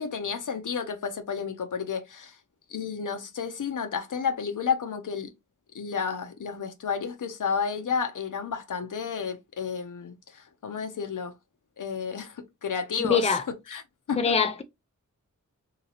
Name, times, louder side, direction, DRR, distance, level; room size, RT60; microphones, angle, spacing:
voice 1, 0.0-2.4 2.7-5.3 5.7-11.3 11.8-13.4 13.7-13.8 14.1-14.3, left 6 dB, 75° left, 0.7 m, -31 dB
voice 2, 13.0-13.4 14.2-14.6, left 5 dB, 20° left, 0.5 m, -23 dB
2.9 x 2.8 x 2.8 m
wide cardioid pair, 85°, 31 cm